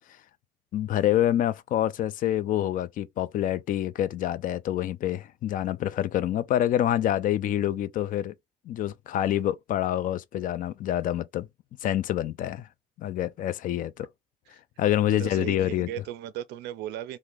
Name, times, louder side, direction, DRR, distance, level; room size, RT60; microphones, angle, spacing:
voice 1, 0.7-8.3 8.7-11.5 11.8-12.7 13.0-14.1 14.8-15.9, left 12 dB, 55° left, 0.4 m, -27 dB
voice 2, 15.0-17.2, right 12 dB, 80° right, 0.4 m, -37 dB
3.4 x 2.1 x 3.2 m
cardioid pair, 110°, 17 cm